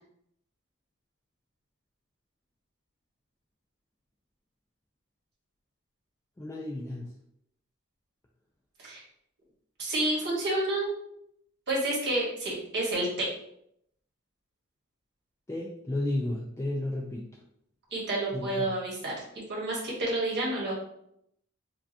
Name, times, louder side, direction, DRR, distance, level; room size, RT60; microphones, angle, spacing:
voice 1, 6.4-7.1 15.5-17.3 18.3-18.7, left 1 dB, 15° left, -2 dB, 0.3 m, -33 dB
voice 2, 9.8-10.9 11.7-13.3 17.9-19.1 19.5-20.7, right 1 dB, 55° right, -4 dB, 1.3 m, -29 dB
4.6 x 2.3 x 2.8 m, 0.74 s
head